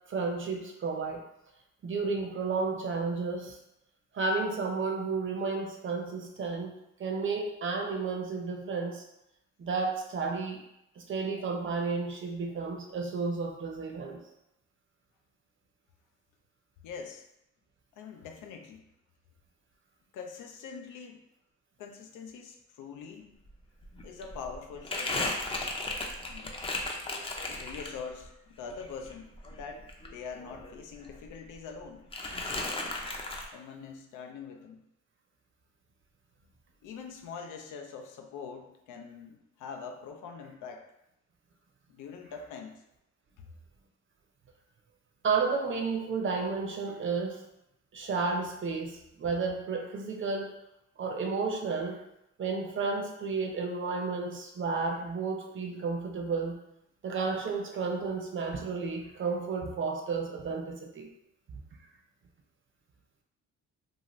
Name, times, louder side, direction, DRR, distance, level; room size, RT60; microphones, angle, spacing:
voice 1, 0.1-1.2 1.8-3.6 4.1-9.0 9.6-10.6 11.0-14.2 45.2-47.4 47.9-50.5 51.0-52.0 52.4-56.6 57.0-61.1, right 4 dB, 40° right, 2 dB, 0.6 m, -32 dB
voice 2, 16.8-17.2 18.0-18.8 20.1-21.2 21.8-23.3 24.0-25.5 26.3-26.6 27.5-32.1 33.5-34.8 36.8-40.9 41.9-42.8 43.4-43.5, left 5 dB, 85° left, 4 dB, 0.5 m, -44 dB
Crumpling crinkling, 23.5-23.6 23.8-28.3 28.6-30.8 31.0-31.8 32.1-33.5, left 2 dB, 20° left, 0.5 m, -35 dB
2.7 x 2.4 x 3.0 m, 0.84 s
cardioid pair, 90°, 30 cm